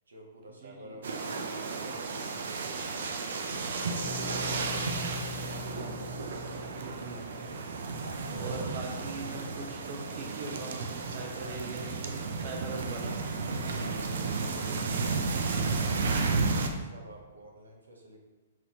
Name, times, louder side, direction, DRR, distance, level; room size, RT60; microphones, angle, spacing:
voice 1, 0.1-3.8 8.3-8.6 11.3-11.6 13.6-18.2, right 1 dB, 90° right, 0 dB, 0.8 m, -50 dB
voice 2, 0.6-0.9 6.7-7.2 8.4-13.1, right 3 dB, 45° right, 1 dB, 0.9 m, -41 dB
sound 1, 1.0-16.7, right 4 dB, 70° right, 0.5 m, -33 dB
sound 2, 4.0-8.9, left 4 dB, 25° left, 0.7 m, -43 dB
4.6 x 3.9 x 2.9 m, 1.3 s
hypercardioid pair, 125°, 0 cm